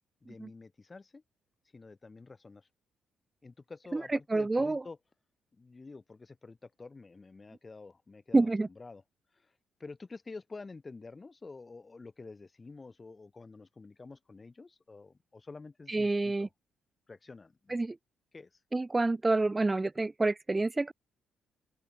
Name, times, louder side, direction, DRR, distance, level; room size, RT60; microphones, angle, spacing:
voice 1, 0.2-1.2 1.7-2.7 3.4-5.0 5.6-9.0 9.4-9.5 9.8-16.5 17.1-17.7 18.3-18.5, left 3 dB, 25° left, 3.8 m, -49 dB
voice 2, 3.9-4.8 8.3-8.7 15.9-16.5 17.7-18.0 18.7-20.9, right 2 dB, 20° right, 0.6 m, -28 dB
open air
cardioid pair, 90°, 0 cm